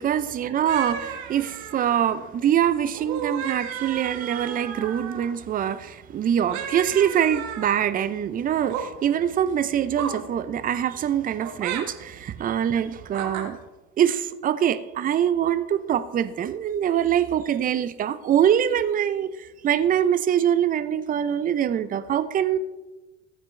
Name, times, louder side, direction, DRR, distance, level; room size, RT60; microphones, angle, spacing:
voice 1, 0.0-13.6 14.0-22.6, right 9 dB, 25° right, 13 dB, 0.6 m, -24 dB
sound 1, 0.7-2.3 2.9-5.3 6.5-7.9 8.5-8.9 10.0-10.2 11.4-11.8 13.1-13.5, right 8 dB, 50° right, 1.5 m, -34 dB
14.5 x 8.9 x 3.3 m, 1.1 s
hypercardioid pair, 80°, 38 cm